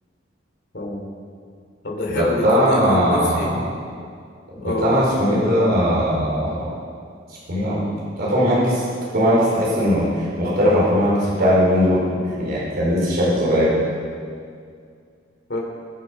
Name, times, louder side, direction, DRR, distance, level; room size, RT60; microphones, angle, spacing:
voice 1, 0.7-1.1 1.8-3.6 4.6-5.0 15.5-15.6, left 2 dB, 60° left, -1 dB, 3.0 m, -26 dB
voice 2, 2.2-3.4 4.6-6.7 7.5-7.9 8.2-8.8 9.1-12.0 12.4-13.7, equal, 55° right, -7 dB, 4.7 m, -19 dB
22.0 x 7.6 x 5.7 m, 2.2 s
head